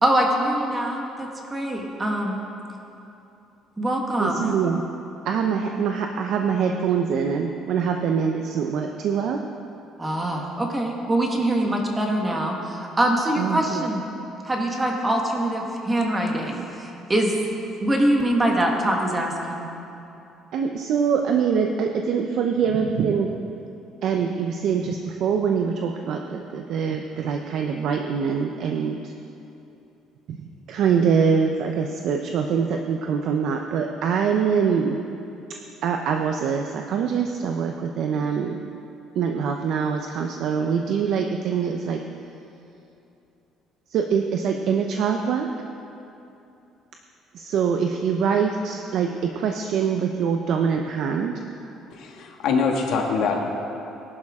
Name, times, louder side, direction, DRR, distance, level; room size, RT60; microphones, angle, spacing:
voice 1, 0.0-2.4 3.8-4.4 10.0-14.0 14.4-17.4 17.8-19.6, right 1 dB, 15° right, 0 dB, 1.6 m, -23 dB
voice 2, 4.2-4.8 5.2-9.4 13.4-13.8 20.5-23.3 24.0-29.1 30.3-30.4 30.7-35.0 35.8-38.6 39.1-42.0 43.9-45.5 47.3-51.3, right 6 dB, 60° right, 4 dB, 0.7 m, -24 dB
voice 3, 51.9-53.4, left 5 dB, 65° left, 0 dB, 1.9 m, -24 dB
19.0 x 11.5 x 3.7 m, 2.8 s
cardioid pair, 150°, 0 cm